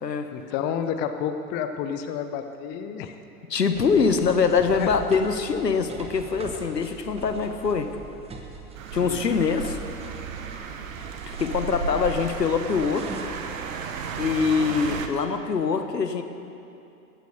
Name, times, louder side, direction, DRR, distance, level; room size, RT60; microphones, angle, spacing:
voice 1, 0.3-3.1 4.8-4.9 8.9-9.2, left 8 dB, 20° left, 8 dB, 0.6 m, -30 dB
voice 2, 3.5-7.9 8.9-9.8 10.1-10.2 11.3-13.1 14.2-16.2, left 5 dB, 80° left, 8 dB, 1.1 m, -24 dB
sound 1, 3.7-13.6, right 4 dB, 10° right, 1.1 m, -43 dB
sound 2, 8.8-15.1, right 5 dB, 55° right, 1.2 m, -34 dB
15.5 x 9.3 x 6.6 m, 2.7 s
figure-of-eight pair, 100°, 48 cm